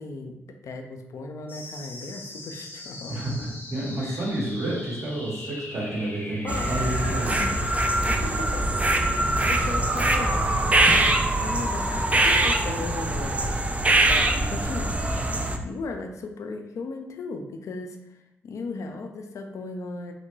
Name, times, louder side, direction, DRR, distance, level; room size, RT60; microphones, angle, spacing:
voice 1, 0.0-3.2 4.0-4.3 6.4-8.6 9.1-10.5 11.4-13.6 14.1-15.0 15.6-20.1, left 3 dB, 60° left, 4 dB, 0.3 m, -37 dB
sound 1, 1.5-12.5, left 1 dB, 35° left, 0.7 m, -41 dB
voice 2, 3.1-7.3 10.8-10.9, right 1 dB, 55° right, -5 dB, 1.1 m, -30 dB
sound 2, 6.5-15.6, right 2 dB, 20° right, 0.3 m, -23 dB
2.2 x 2.1 x 3.1 m, 0.89 s
hypercardioid pair, 40°, 6 cm